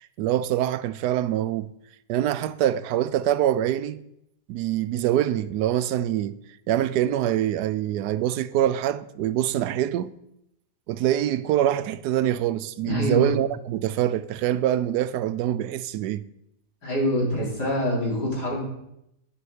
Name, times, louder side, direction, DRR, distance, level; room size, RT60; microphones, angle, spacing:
voice 1, 0.0-1.7 2.1-4.0 4.5-6.4 6.7-10.1 10.9-16.2, right 11 dB, 80° right, 1.1 m, -24 dB
voice 2, 12.8-13.3 16.8-18.6, left 1 dB, 75° left, 4.8 m, -25 dB
11.0 x 11.0 x 4.9 m
omnidirectional pair, 1.8 m